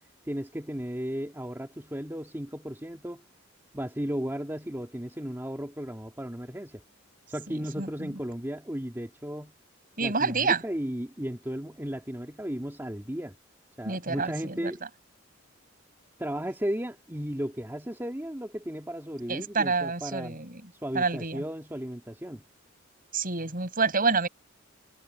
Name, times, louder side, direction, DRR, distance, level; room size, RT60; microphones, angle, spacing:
voice 1, 0.2-3.2 3.7-6.8 7.3-9.5 10.0-13.4 13.8-14.8 16.2-20.4 20.8-22.4, equal, 10° right, 2.2 m, -35 dB
voice 2, 7.5-8.1 10.0-10.6 13.8-14.7 19.3-20.7 20.9-21.4 23.1-24.3, right 4 dB, 45° right, 7.8 m, -28 dB
head